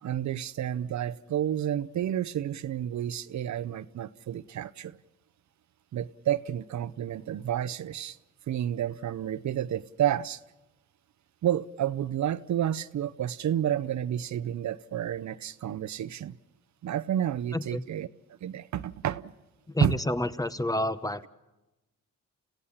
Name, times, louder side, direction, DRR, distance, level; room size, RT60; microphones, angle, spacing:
voice 1, 0.0-5.0 5.9-8.2 8.5-10.4 11.4-16.4 16.8-18.1 18.4-19.3 19.8-20.0, right 10 dB, 65° right, 14 dB, 0.7 m, -30 dB
voice 2, 17.5-17.8 19.7-21.3, left 1 dB, 10° left, 13 dB, 0.9 m, -29 dB
29.5 x 16.0 x 7.2 m, 1.0 s
cardioid pair, 65°, 31 cm